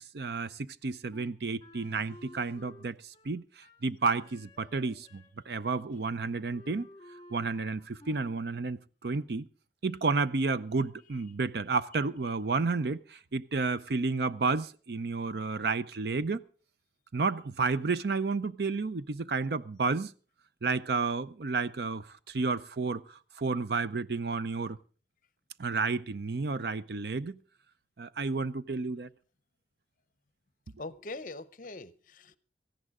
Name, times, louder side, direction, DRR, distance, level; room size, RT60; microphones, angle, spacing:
voice 1, 0.1-3.0 3.2-6.9 7.3-9.5 9.8-16.4 17.1-20.1 20.6-24.8 25.6-27.4 28.0-29.1, right 4 dB, 65° right, 0.6 m, -31 dB
Wind instrument woodwind instrument, 1.1-5.4 5.6-5.8 6.1-8.4, left 1 dB, 20° left, 1.7 m, -54 dB
voice 2, 30.8-32.4, left 2 dB, 45° left, 0.7 m, -42 dB
17.5 x 14.5 x 3.6 m
head